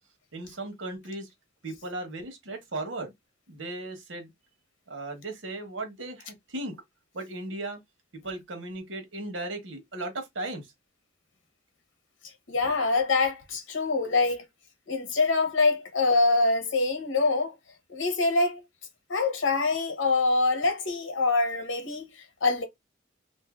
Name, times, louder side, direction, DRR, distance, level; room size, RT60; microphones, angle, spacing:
voice 1, 0.3-1.3 1.6-3.1 3.5-4.3 4.9-6.8 7.1-7.8 8.1-10.7, right 2 dB, 80° right, 1.1 m, -36 dB
voice 2, 12.5-14.5 14.9-17.5 17.9-18.6 19.1-22.1 22.4-22.6, left 3 dB, 85° left, 1.0 m, -25 dB
2.6 x 2.6 x 3.6 m
head